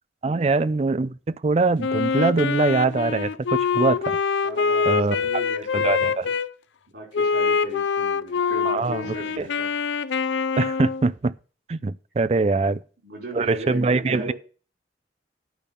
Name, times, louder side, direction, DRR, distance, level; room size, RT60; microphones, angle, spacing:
voice 1, 0.2-4.2 4.9-5.2 5.7-6.3 8.7-9.1 10.6-11.3 11.7-12.8 13.3-14.3, right 3 dB, 35° right, 0.4 m, -23 dB
Wind instrument woodwind instrument, 1.8-6.5 7.1-11.1, left 5 dB, 90° left, 0.5 m, -24 dB
voice 2, 4.4-6.1 6.9-9.7 12.6-14.3, right 1 dB, 65° right, 5.2 m, -37 dB
10.5 x 5.4 x 6.7 m
head